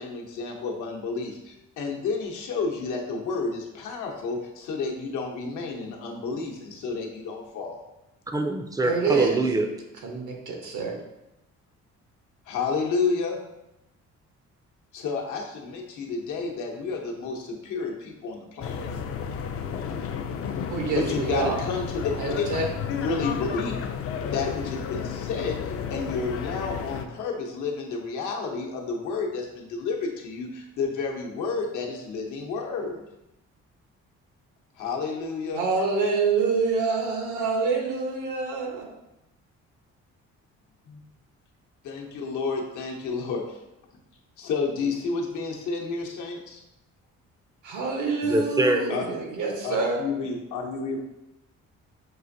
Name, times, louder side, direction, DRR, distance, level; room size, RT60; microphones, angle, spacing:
voice 1, 0.0-7.8 12.5-13.4 14.9-18.9 20.9-22.4 22.9-23.7 24.3-33.0 34.8-35.6 40.9-41.0 41.8-43.6 44.4-46.6 48.9-49.0 49.6-51.0, left 4 dB, 80° left, 0 dB, 0.8 m, -31 dB
voice 2, 8.3-9.7 48.2-48.8, right 2 dB, 10° right, 6 dB, 0.4 m, -24 dB
voice 3, 8.8-9.5 10.0-11.0 20.7-21.6 22.1-22.7 35.5-38.9 47.6-50.0, right 4 dB, 80° right, 1 dB, 1.0 m, -26 dB
sound 1, 18.6-27.1, left 7 dB, 50° left, 0.4 m, -32 dB
6.1 x 2.5 x 2.6 m, 0.92 s
cardioid pair, 90°, 30 cm